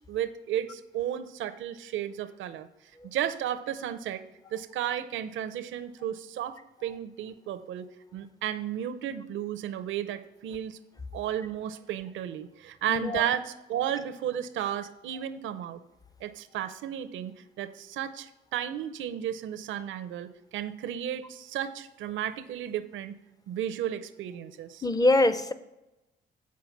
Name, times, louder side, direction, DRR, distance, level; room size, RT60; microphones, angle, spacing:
voice 1, 0.1-2.7 3.1-4.2 4.5-10.8 11.1-15.8 16.2-23.2 23.5-24.8, right 10 dB, 75° right, 10 dB, 0.5 m, -33 dB
voice 2, 12.9-13.2 24.8-25.5, left 2 dB, 20° left, 12 dB, 0.6 m, -23 dB
7.3 x 4.8 x 5.7 m, 0.95 s
cardioid pair, 90°, 20 cm